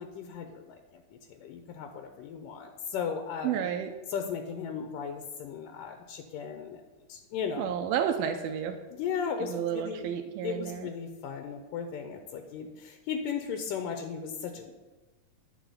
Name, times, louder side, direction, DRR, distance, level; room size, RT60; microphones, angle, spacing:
voice 1, 0.0-3.7 4.1-6.8 7.1-7.8 8.9-10.1 10.4-14.7, left 7 dB, 75° left, 6 dB, 2.4 m, -36 dB
voice 2, 3.4-3.9 7.6-8.8 9.5-10.9, right 9 dB, 90° right, 5 dB, 2.6 m, -31 dB
10.5 x 6.0 x 8.4 m, 1.3 s
omnidirectional pair, 4.2 m